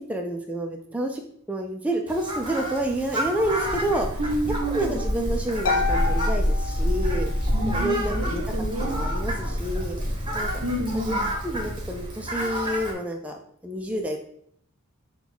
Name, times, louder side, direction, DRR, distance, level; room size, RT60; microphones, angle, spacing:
voice 1, 0.1-1.2 1.5-4.2 4.7-7.3 7.6-8.4 8.8-10.0 10.3-10.5 10.9-11.1 11.4-13.3 13.6-14.2, right 1 dB, 5° right, 2 dB, 0.4 m, -29 dB
Fowl, 2.1-12.9, right 1 dB, 25° right, 0.8 m, -33 dB
sound 1, 3.3-12.1, equal, 10° left, 0.8 m, -28 dB
voice 2, 4.2-5.0 7.5-8.2 8.5-9.0 10.6-11.2, right 1 dB, 70° right, 5 dB, 0.7 m, -29 dB
Harp, 5.7-7.5, left 5 dB, 70° left, 0.4 m, -29 dB
6.0 x 2.3 x 3.8 m, 0.66 s
head